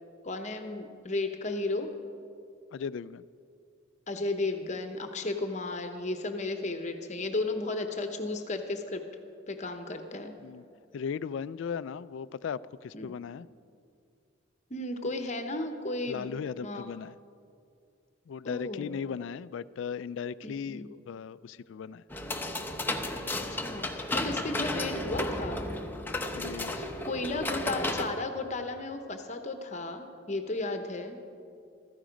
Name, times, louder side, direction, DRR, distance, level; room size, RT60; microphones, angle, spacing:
voice 1, 0.2-1.9 4.1-9.0 9.5-10.4 12.9-13.1 14.7-16.4 16.6-16.8 18.4-19.0 20.4-20.9 23.5-25.7 26.7-31.2, left 2 dB, 35° left, 7 dB, 0.9 m, -34 dB
voice 2, 2.7-3.2 10.4-10.6 10.9-13.5 16.1-17.1 18.3-22.0 26.3-26.8, left 6 dB, 70° left, 17 dB, 0.3 m, -37 dB
sound 1, 22.1-28.1, left 1 dB, 10° left, 0.7 m, -33 dB
15.0 x 14.0 x 5.2 m, 2.4 s
head